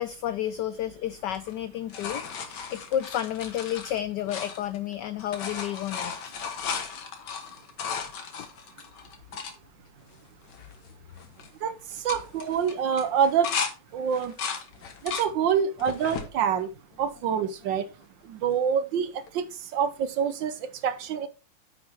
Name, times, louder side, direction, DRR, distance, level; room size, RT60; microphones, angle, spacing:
voice 1, 0.0-6.3, left 11 dB, 85° left, 0.9 m, -31 dB
sound 1, 1.3-4.9 5.2-9.5 10.1-10.2 10.4-10.9 11.2-11.5 11.9-13.7 14.1-15.3 15.8-16.3 16.9-17.7 19.3-19.4, left 6 dB, 55° left, 1.7 m, -35 dB
voice 2, 11.6-13.5 13.9-14.3 15.0-16.7 17.0-17.9 18.2-21.3, right 7 dB, 70° right, 1.2 m, -26 dB
9.2 x 6.3 x 3.4 m
omnidirectional pair, 2.4 m